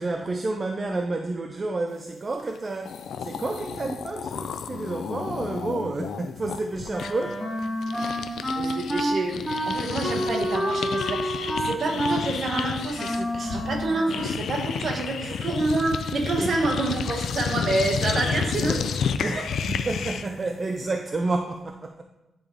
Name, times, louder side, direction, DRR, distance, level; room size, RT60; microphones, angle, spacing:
voice 1, 0.0-7.4 15.2-15.4 16.4-16.6 19.2-22.0, right 3 dB, 25° right, 4 dB, 0.3 m, -30 dB
sound 1, 2.6-2.7 2.8-9.0 9.3-20.4, left 6 dB, 70° left, 0.3 m, -31 dB
Wind instrument woodwind instrument, 6.9-14.5, equal, 5° right, 1.0 m, -29 dB
voice 2, 8.5-18.8 19.3-19.4, right 2 dB, 45° right, 2 dB, 1.0 m, -28 dB
9.9 x 3.5 x 3.5 m, 0.99 s
wide cardioid pair, 150°, 0 cm